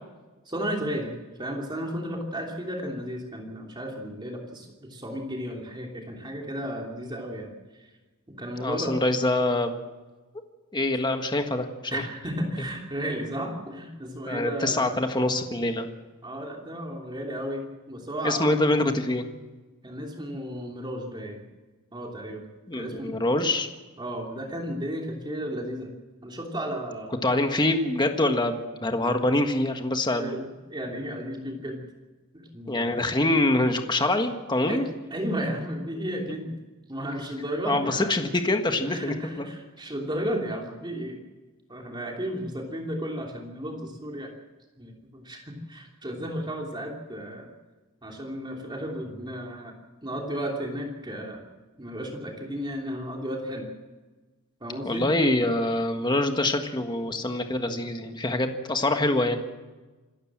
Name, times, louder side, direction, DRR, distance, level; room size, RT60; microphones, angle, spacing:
voice 1, 0.5-1.1 1.4-7.9 8.3-9.0 11.9-15.0 16.2-18.5 19.8-21.4 21.9-22.4 22.7-23.4 24.0-25.9 26.2-27.2 30.2-30.4 30.7-31.8 32.3-33.0 34.7-34.8 35.1-36.5 36.9-38.1 38.8-41.2 41.7-44.3 44.8-47.5 48.0-49.7 50.0-51.5 51.8-53.7 54.6-55.1, equal, 20° right, 0 dB, 3.0 m, -33 dB
voice 2, 8.6-9.7 10.7-12.0 14.3-15.9 18.2-19.3 22.7-23.7 27.2-30.4 32.7-34.8 37.6-39.5 54.8-59.4, left 2 dB, 20° left, 5 dB, 1.6 m, -25 dB
26.5 x 13.5 x 7.6 m, 1.2 s
head